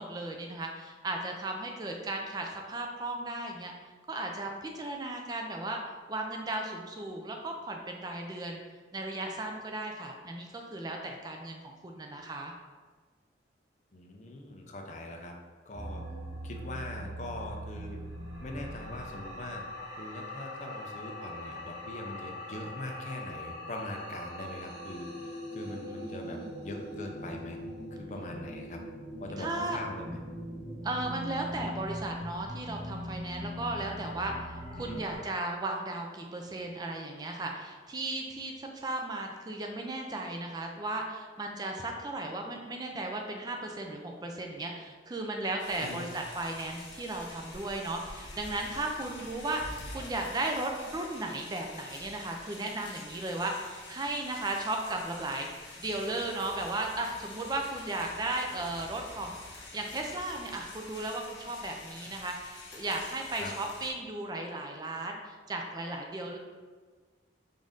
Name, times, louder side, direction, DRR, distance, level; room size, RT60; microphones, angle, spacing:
voice 1, 0.0-3.7 4.1-5.8 6.1-8.6 8.9-12.5 25.8-26.5 29.4-29.8 30.8-55.5 55.8-66.4, right 2 dB, 20° right, 2 dB, 0.3 m, -36 dB
voice 2, 13.9-15.3 15.7-16.0 16.4-18.0 18.4-19.6 20.0-27.6 27.9-28.8 29.2-30.2 34.8-35.0 45.8-46.1 63.4-63.5, left 1 dB, 40° left, 2 dB, 0.5 m, -42 dB
sound 1, 15.7-35.2, equal, 85° right, 1.3 m, -41 dB
sound 2, 45.6-63.9, left 2 dB, 80° left, 1.3 m, -47 dB
5.1 x 2.6 x 3.7 m, 1.5 s
head